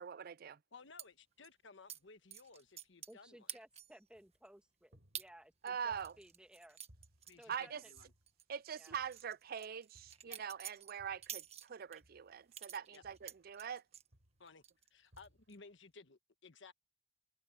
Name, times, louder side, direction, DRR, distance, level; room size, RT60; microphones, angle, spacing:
voice 1, 0.0-0.6 5.6-6.1 7.5-7.8 8.5-13.8, right 7 dB, 55° right, 0.5 m, -43 dB
voice 2, 0.7-3.5 7.3-8.1 10.2-10.4 12.9-13.0 14.4-14.6 14.9-16.7, left 4 dB, 80° left, 1.4 m, -58 dB
sound 1, 1.0-1.1 1.9-2.0 2.3-3.2 3.5-4.0 4.4-4.5 5.1-5.3 5.7-8.0 8.3-8.4 8.9-12.0 12.5-14.1 14.5-14.9 15.2-15.5, right 9 dB, 35° right, 1.4 m, -49 dB
voice 3, 3.1-6.8 7.4-7.9 8.7-9.0, equal, 5° right, 1.8 m, -59 dB
sound 2, 4.1-4.6 4.9-6.6 6.9-8.5 8.9-9.5 9.9-11.5 12.0-13.8 14.1-14.6 15.1-15.7, equal, 85° right, 4.3 m, -68 dB
head